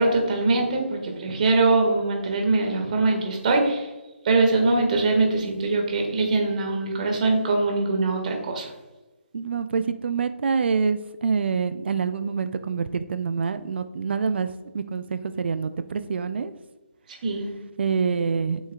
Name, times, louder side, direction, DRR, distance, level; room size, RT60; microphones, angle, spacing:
voice 1, 0.0-3.9 4.2-8.7 17.2-17.5, right 3 dB, 40° right, 2 dB, 1.6 m, -22 dB
voice 2, 9.3-14.5 14.7-16.5 17.8-18.6, right 5 dB, 55° right, 11 dB, 0.4 m, -26 dB
8.1 x 6.3 x 2.3 m, 1.1 s
figure-of-eight pair, 155°, 7 cm